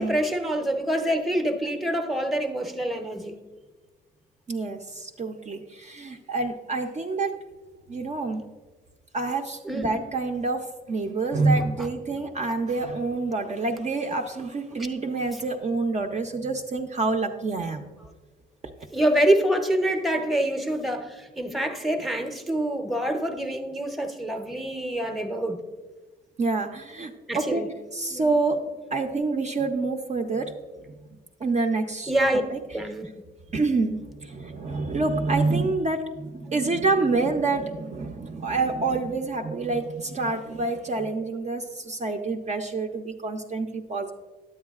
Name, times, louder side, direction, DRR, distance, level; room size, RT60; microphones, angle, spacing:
voice 1, 0.0-3.4 9.6-9.9 11.8-11.9 18.9-25.6 27.3-27.7 28.1-28.3 32.1-32.4 32.7-33.1, right 1 dB, ahead, 5 dB, 0.7 m, -26 dB
voice 2, 4.5-7.4 7.9-8.4 9.1-17.9 26.4-27.6 27.9-30.5 31.4-32.6 33.5-44.1, right 3 dB, 35° right, 4 dB, 0.5 m, -27 dB
9.6 x 8.0 x 2.3 m, 1.3 s
cardioid pair, 90°, 20 cm